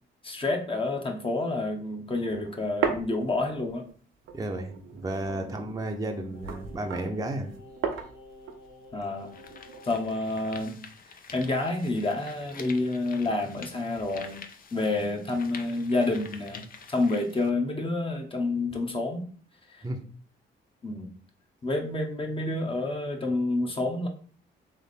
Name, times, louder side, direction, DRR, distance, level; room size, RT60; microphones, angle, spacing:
voice 1, 0.2-3.8 8.9-9.3 9.8-10.8 11.3-14.4 14.7-19.3 19.7-19.8 20.8-21.1 21.6-24.1, left 2 dB, 25° left, 2 dB, 1.0 m, -29 dB
sound 1, 2.1-3.9 4.3-10.2, right 6 dB, 80° right, 0.8 m, -36 dB
voice 2, 4.3-7.5 19.8-20.0, right 1 dB, 15° right, 3 dB, 0.7 m, -33 dB
Singing, 6.3-10.2 10.5-10.6, left 2 dB, 80° left, 1.5 m, -50 dB
sound 2, 8.3-8.4 9.0-17.5, left 5 dB, 45° left, 0.6 m, -47 dB
3.5 x 3.1 x 4.1 m, 0.43 s
cardioid pair, 90°, 20 cm